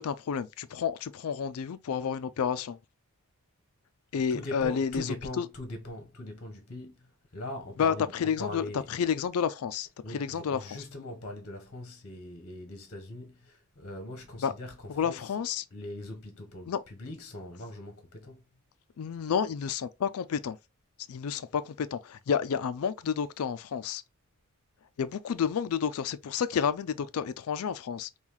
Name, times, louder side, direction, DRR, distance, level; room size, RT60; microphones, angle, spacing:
voice 1, 0.0-2.8 4.1-5.5 7.8-10.8 14.4-14.5 14.9-15.6 16.7-16.8 19.0-20.6 21.1-24.0 25.0-28.1, left 7 dB, 70° left, 0.4 m, -30 dB
voice 2, 4.3-8.1 8.4-8.9 10.0-14.7 15.0-15.3 15.7-18.4, left 1 dB, 50° left, 1.0 m, -41 dB
5.4 x 2.3 x 3.0 m
head